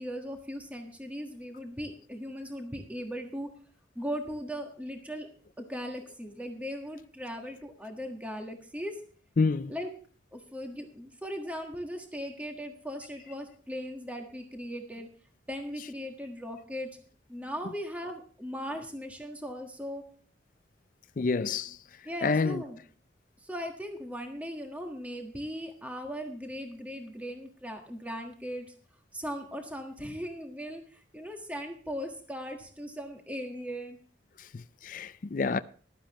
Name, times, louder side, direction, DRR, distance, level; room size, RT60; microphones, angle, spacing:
voice 1, 0.0-3.5 3.9-5.3 5.7-8.9 9.7-9.9 10.3-15.1 15.5-16.9 17.3-20.0 22.0-22.8 23.4-28.7 29.1-34.0, equal, 10° right, 1.5 m, -38 dB
voice 2, 9.4-9.7 21.2-21.8 22.2-22.6 34.5-35.6, left 4 dB, 45° left, 0.4 m, -28 dB
15.0 x 12.0 x 3.0 m
head